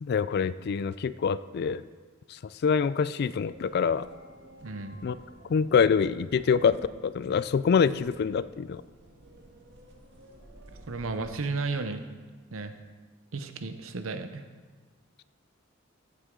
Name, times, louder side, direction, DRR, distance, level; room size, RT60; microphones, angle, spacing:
voice 1, 0.0-1.8 2.3-4.1 5.0-5.2 5.5-8.8, left 6 dB, 50° left, 17 dB, 0.3 m, -25 dB
sound 1, 3.4-11.3, right 1 dB, 60° right, 1.8 m, -52 dB
voice 2, 4.6-5.0 10.9-12.0 12.5-12.7 13.3-14.4, right 3 dB, 80° right, 9 dB, 0.8 m, -33 dB
14.5 x 7.8 x 3.7 m, 1.4 s
head